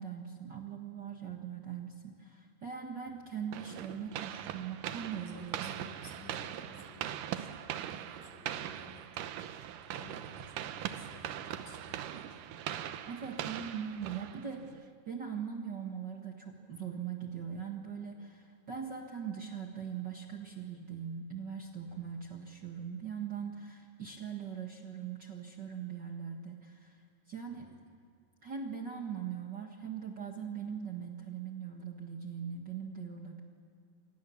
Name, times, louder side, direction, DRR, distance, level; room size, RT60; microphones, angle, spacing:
voice 1, 0.0-5.7 13.1-27.0 27.3-27.7 28.4-33.4, right 7 dB, 40° right, 1 dB, 1.7 m, -41 dB
sound 1, 3.5-14.8, right 11 dB, 80° right, 2.5 m, -41 dB
voice 2, 5.2-9.3 9.8-12.5 21.9-22.1 27.5-27.8, left 2 dB, 60° left, 0 dB, 4.9 m, -55 dB
30.0 x 25.5 x 7.1 m, 2.3 s
omnidirectional pair, 3.8 m